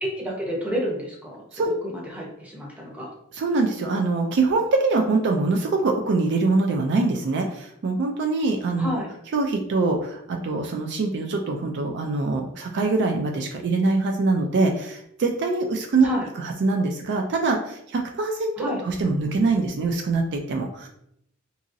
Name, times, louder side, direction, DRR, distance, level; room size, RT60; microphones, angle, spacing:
voice 1, 0.0-3.1 8.8-9.1 16.0-16.3 18.6-18.8, equal, 5° right, -3 dB, 0.7 m, -30 dB
voice 2, 3.3-8.9 9.3-16.1 16.4-20.9, right 3 dB, 55° right, 3 dB, 0.3 m, -24 dB
2.8 x 2.6 x 2.6 m, 0.73 s
head